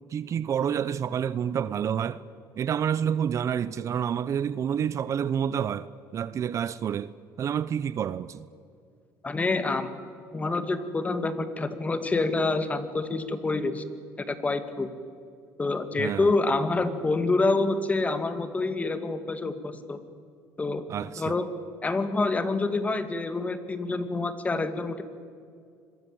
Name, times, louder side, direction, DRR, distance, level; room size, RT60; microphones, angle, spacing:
voice 1, 0.1-2.2 2.6-8.5 16.0-16.3 20.9-21.3, right 8 dB, 45° right, 0.8 m, -29 dB
voice 2, 9.2-9.9 10.3-13.8 14.3-14.9 15.6-20.0 20.6-20.8 21.2-21.5 21.8-25.0, left 3 dB, 20° left, 2.3 m, -27 dB
27.0 x 22.5 x 7.9 m
cardioid pair, 110°, 7 cm